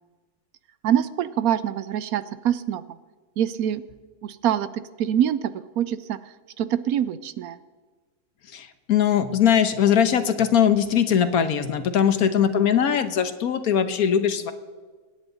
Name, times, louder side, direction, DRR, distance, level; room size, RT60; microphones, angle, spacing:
voice 1, 0.8-2.8 3.4-3.8 4.2-4.7 5.0-6.2 6.6-7.6, right 10 dB, 75° right, 14 dB, 1.0 m, -24 dB
voice 2, 8.5-14.5, left 8 dB, 70° left, 10 dB, 1.4 m, -21 dB
25.0 x 9.8 x 4.0 m, 1.4 s
omnidirectional pair, 1.7 m